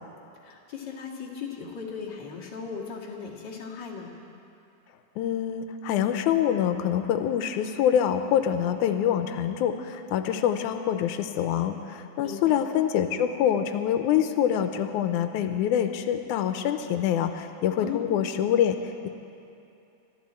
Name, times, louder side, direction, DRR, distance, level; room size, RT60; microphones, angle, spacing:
voice 1, 0.4-4.1 12.2-12.6 17.8-18.0, left 6 dB, 40° left, -4 dB, 2.3 m, -37 dB
voice 2, 5.2-19.1, left 9 dB, 90° left, 8 dB, 2.1 m, -25 dB
25.0 x 13.0 x 4.4 m, 2.7 s
omnidirectional pair, 3.4 m